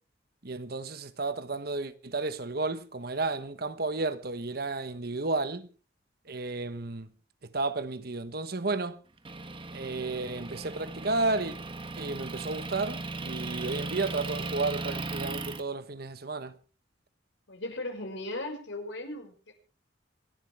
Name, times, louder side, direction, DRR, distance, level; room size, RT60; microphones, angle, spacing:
voice 1, 0.4-5.7 6.3-7.1 7.5-9.0 9.7-11.5 12.0-16.5, right 3 dB, 55° right, 1.2 m, -32 dB
Motor vehicle (road) / Engine, 9.2-15.6, right 3 dB, 30° right, 1.3 m, -37 dB
voice 2, 17.5-19.5, left 1 dB, 85° left, 5.7 m, -37 dB
26.5 x 12.0 x 3.5 m
head